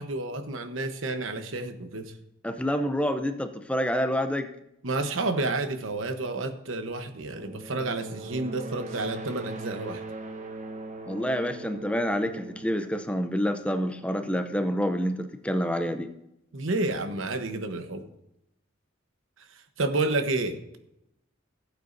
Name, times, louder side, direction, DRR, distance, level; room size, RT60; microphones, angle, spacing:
voice 1, 0.0-2.1 4.8-10.0 16.5-18.1 19.8-20.6, right 2 dB, 80° right, 8 dB, 1.0 m, -30 dB
voice 2, 2.4-4.5 11.1-16.1, equal, 5° left, 8 dB, 0.5 m, -28 dB
sound 1, 7.3-14.0, right 2 dB, 35° right, 1.1 m, -40 dB
16.0 x 8.3 x 2.6 m, 0.83 s
head